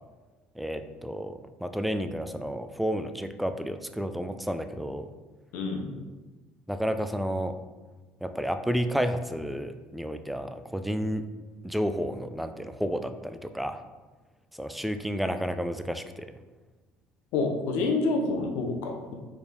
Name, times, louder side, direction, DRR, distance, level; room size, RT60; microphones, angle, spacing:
voice 1, 0.6-5.1 6.7-7.6 8.2-11.3 11.6-13.8 14.6-16.3, equal, ahead, 9 dB, 0.4 m, -31 dB
voice 2, 5.5-6.0 17.3-19.1, left 3 dB, 80° left, 3 dB, 1.1 m, -28 dB
4.8 x 4.3 x 5.2 m, 1.3 s
cardioid pair, 115°, 4 cm